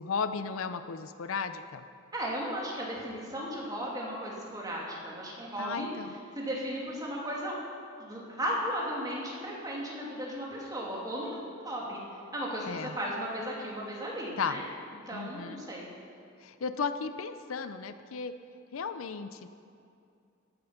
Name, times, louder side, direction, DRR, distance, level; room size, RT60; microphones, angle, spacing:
voice 1, 0.0-1.9 5.6-6.1 12.7-13.0 14.4-14.6 15.1-15.6 16.4-18.3 18.7-19.5, left 5 dB, 75° left, 11 dB, 0.6 m, -35 dB
voice 2, 2.1-5.9 6.3-7.6 8.0-12.0 12.3-14.6 15.1-15.9, equal, 20° right, -4 dB, 2.7 m, -35 dB
15.0 x 8.8 x 5.8 m, 2.4 s
head